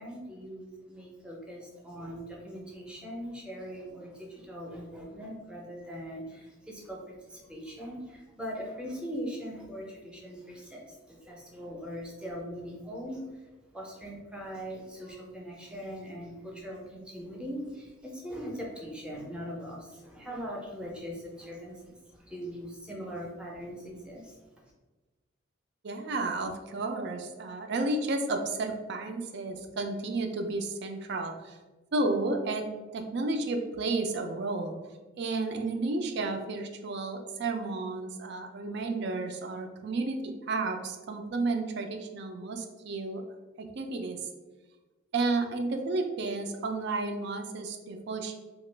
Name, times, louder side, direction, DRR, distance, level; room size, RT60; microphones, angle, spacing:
voice 1, 0.0-24.4, equal, 5° right, -2 dB, 0.5 m, -41 dB
voice 2, 25.8-31.6 31.9-32.6 32.9-34.7 35.2-43.2 43.6-44.2 45.1-48.4, right 3 dB, 55° right, 5 dB, 0.4 m, -32 dB
2.9 x 2.3 x 3.2 m, 1.2 s
head